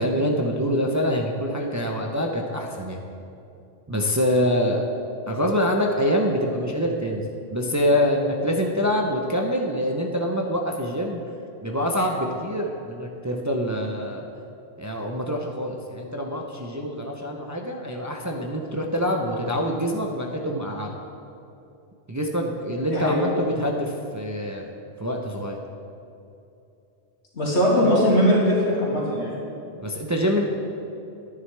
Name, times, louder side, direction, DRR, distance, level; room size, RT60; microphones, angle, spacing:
voice 1, 0.0-3.0 3.9-4.8 5.3-7.2 7.5-11.2 11.6-14.3 14.8-20.9 22.1-24.6 25.0-25.6 29.8-30.4, equal, 20° right, 1 dB, 0.5 m, -25 dB
voice 2, 22.9-23.2 27.4-29.3, equal, 90° left, -6 dB, 2.6 m, -20 dB
11.0 x 9.4 x 3.3 m, 2.8 s
omnidirectional pair, 1.1 m